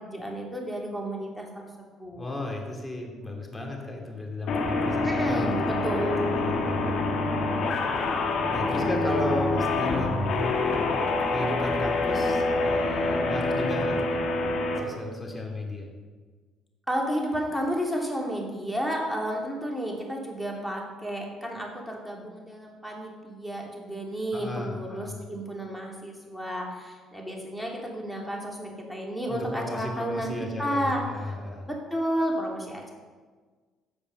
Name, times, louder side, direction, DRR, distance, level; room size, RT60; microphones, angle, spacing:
voice 1, 0.0-2.3 5.0-6.2 16.9-31.4 31.6-32.9, equal, ahead, -1 dB, 2.9 m, -32 dB
voice 2, 2.2-5.5 6.3-7.0 8.5-10.8 11.3-14.2 14.8-15.9 24.3-25.2 29.3-31.7, left 1 dB, 20° left, 1 dB, 2.7 m, -34 dB
sound 1, 4.5-14.8, left 2 dB, 70° left, 1.8 m, -26 dB
15.5 x 5.2 x 5.5 m, 1.4 s
supercardioid pair, 70°, 0 cm